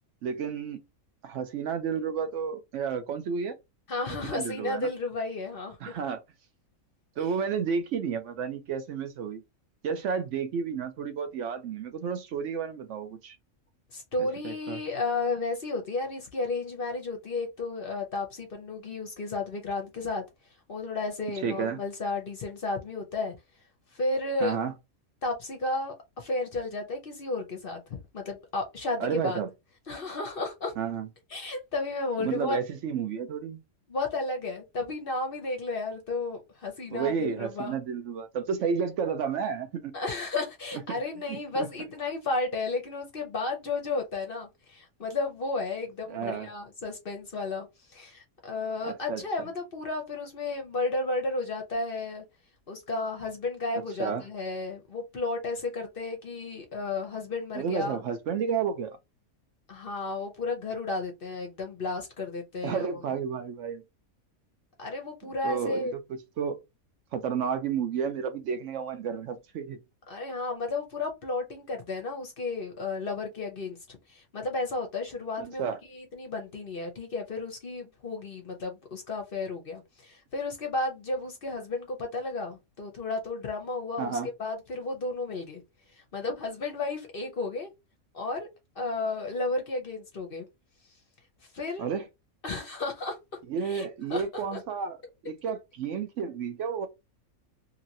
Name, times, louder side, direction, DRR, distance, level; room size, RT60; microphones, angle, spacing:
voice 1, 0.2-0.8 1.2-3.5 4.2-4.9 5.8-6.2 7.2-9.4 9.8-13.4 14.4-14.8 21.4-21.8 24.4-24.7 29.0-29.5 30.8-31.1 32.2-33.6 36.9-39.9 40.9-41.0 41.3-41.7 46.1-46.5 48.8-49.2 54.0-54.2 57.5-59.0 62.6-63.8 65.4-65.9 66.4-66.6 67.1-69.8 75.4-75.8 84.0-84.3 91.8-92.1 93.5-95.0 95.2-96.9, right 6 dB, 65° right, 0.8 m, -31 dB
voice 2, 3.9-5.9 7.2-7.3 13.9-20.2 20.7-23.4 23.9-24.6 25.2-29.4 29.9-30.7 31.3-32.6 33.9-37.8 39.9-52.2 52.7-58.0 59.7-63.0 64.8-65.9 70.1-85.6 85.9-87.7 88.1-88.5 88.8-90.5 91.5-91.9 92.4-94.6, left 3 dB, 50° left, 0.7 m, -33 dB
2.9 x 2.8 x 2.6 m
omnidirectional pair, 1.5 m